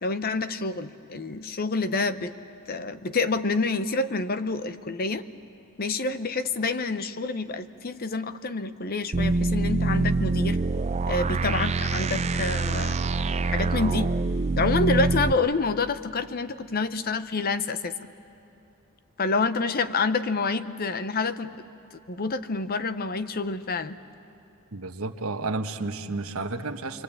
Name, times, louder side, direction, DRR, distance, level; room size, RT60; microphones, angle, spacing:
voice 1, 0.0-2.3 2.7-5.2 5.8-10.6 11.1-13.0 13.5-14.1 14.6-18.1 19.2-21.6 22.1-24.0, left 3 dB, 45° left, 12 dB, 0.8 m, -27 dB
sound 1, 9.1-15.3, right 3 dB, 30° right, 0.5 m, -25 dB
voice 2, 24.7-27.0, right 3 dB, 75° right, 7 dB, 1.2 m, -31 dB
27.0 x 23.0 x 8.8 m, 3.0 s
head